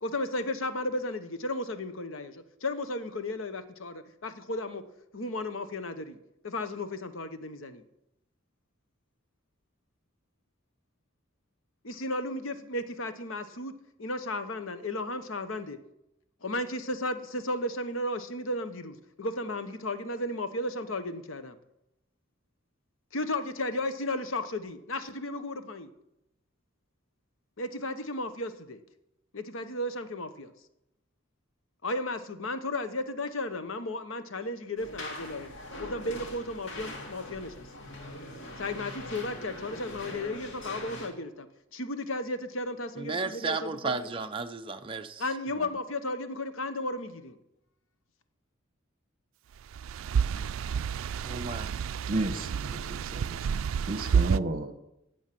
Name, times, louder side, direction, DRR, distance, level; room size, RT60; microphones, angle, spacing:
voice 1, 0.0-4.8 5.1-6.2 6.4-7.8 11.8-13.7 14.0-15.8 16.4-21.6 23.1-25.9 27.6-28.8 29.3-30.5 31.8-35.5 35.8-37.6 38.6-41.5 41.7-44.1 45.2-47.4, left 1 dB, 80° left, 10 dB, 1.1 m, -34 dB
sound 1, 34.8-41.1, left 1 dB, 65° left, 2.7 m, -42 dB
voice 2, 43.0-45.2 45.6-45.7 51.2-51.7, right 4 dB, 25° right, 5 dB, 0.6 m, -34 dB
sound 2, 49.7-54.4, right 7 dB, 80° right, 0.3 m, -29 dB
voice 3, 52.1-53.5 53.9-54.7, right 2 dB, 45° right, 8 dB, 1.0 m, -32 dB
14.5 x 8.2 x 6.0 m, 0.84 s
head